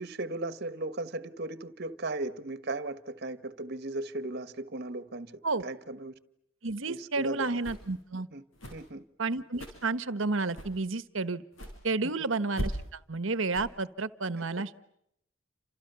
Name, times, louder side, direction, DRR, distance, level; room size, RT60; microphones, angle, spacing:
voice 1, 0.0-6.1 6.9-7.6 8.3-8.4 8.7-9.0 12.0-12.3 14.4-14.6, right 2 dB, 50° right, 1.5 m, -37 dB
voice 2, 6.6-8.3 9.2-11.4 11.8-14.7, right 3 dB, 70° right, 1.3 m, -31 dB
sound 1, 7.5-8.0 8.5-8.9 9.5-9.9 10.5-10.8 11.5-11.8 12.5-12.9 13.5-13.7, equal, 75° left, 6.4 m, -38 dB
30.0 x 27.5 x 7.0 m
head